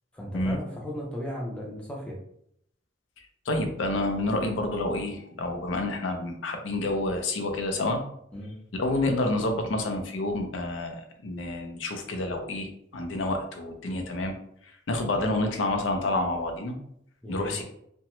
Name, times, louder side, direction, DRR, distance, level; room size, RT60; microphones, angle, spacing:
voice 1, 0.1-2.2 8.3-8.5 17.2-17.6, equal, 5° left, -3 dB, 0.5 m, -36 dB
voice 2, 3.5-8.0 8.7-14.3 14.9-16.7 17.3-17.6, left 2 dB, 70° left, 4 dB, 0.5 m, -28 dB
2.8 x 2.1 x 2.9 m, 0.72 s
head